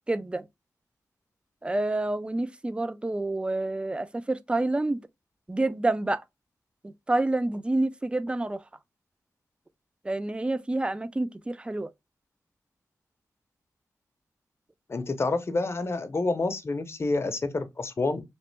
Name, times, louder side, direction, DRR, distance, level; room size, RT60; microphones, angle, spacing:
voice 1, 0.1-0.5 1.6-5.0 5.5-6.2 6.8-8.6 10.0-11.9, right 2 dB, 15° right, 0.3 m, -28 dB
voice 2, 14.9-18.2, left 3 dB, 45° left, 0.6 m, -28 dB
3.1 x 2.9 x 3.1 m
wide cardioid pair, 80°, 6 cm